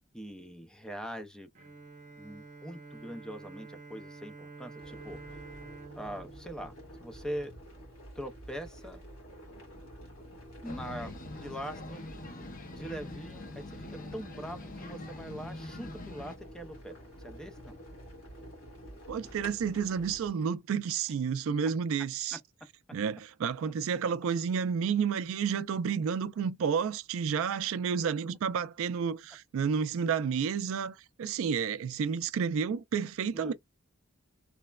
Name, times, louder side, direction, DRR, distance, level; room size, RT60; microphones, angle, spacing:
voice 1, 0.1-1.5 2.2-5.2 6.0-7.5 8.2-9.0 10.6-11.1 11.4-12.0 12.7-16.9 17.2-17.8 33.3-33.5, equal, 5° left, 0.4 m, -42 dB
Bowed string instrument, 1.6-7.7, right 3 dB, 35° right, 0.7 m, -49 dB
sound 1, 4.8-20.3, equal, 80° left, 1.7 m, -49 dB
sound 2, 10.6-16.4, left 2 dB, 40° left, 0.7 m, -44 dB
voice 2, 19.1-22.4 22.9-33.5, right 6 dB, 70° right, 0.3 m, -31 dB
3.2 x 2.0 x 2.2 m
head